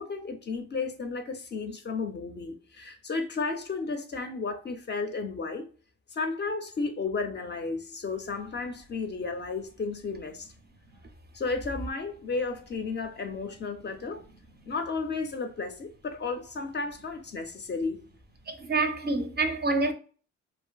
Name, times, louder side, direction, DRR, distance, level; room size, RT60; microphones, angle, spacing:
voice 1, 0.0-5.7 6.1-10.5 11.3-14.2 14.7-18.0, left 4 dB, 35° left, 0.4 m, -33 dB
voice 2, 18.5-19.9, right 3 dB, 35° right, 0.4 m, -27 dB
2.5 x 2.5 x 2.2 m
cardioid pair, 105°, 30 cm